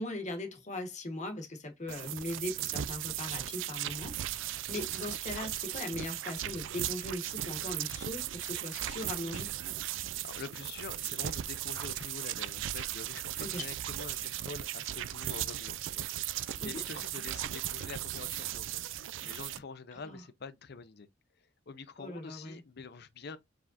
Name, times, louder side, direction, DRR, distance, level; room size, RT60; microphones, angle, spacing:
voice 1, 0.0-4.1 4.4-9.5 13.4-13.6 16.6-16.8 19.9-20.2 22.0-22.6, left 1 dB, 40° left, 1.3 m, -39 dB
sound 1, 1.9-19.6, right 12 dB, 75° right, 0.4 m, -37 dB
voice 2, 10.2-16.1 16.6-18.8 19.2-21.1 21.7-23.4, left 4 dB, 60° left, 0.6 m, -46 dB
5.0 x 3.6 x 2.5 m
head